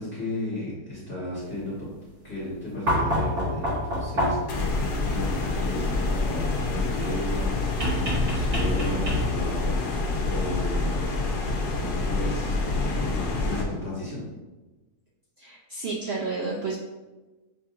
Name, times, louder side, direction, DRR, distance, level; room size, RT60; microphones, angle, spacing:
voice 1, 0.0-1.7 2.2-4.4 4.8-11.1 11.8-14.2, left 1 dB, 45° left, -9 dB, 1.6 m, -34 dB
sound 1, 2.9-4.6 7.8-9.5 11.1-11.2, equal, 35° right, 1.3 m, -27 dB
sound 2, 4.5-13.6, left 3 dB, 80° left, 1.3 m, -27 dB
voice 2, 15.4-16.8, right 3 dB, 75° right, -3 dB, 0.5 m, -31 dB
6.5 x 2.8 x 2.5 m, 1.1 s
omnidirectional pair, 1.7 m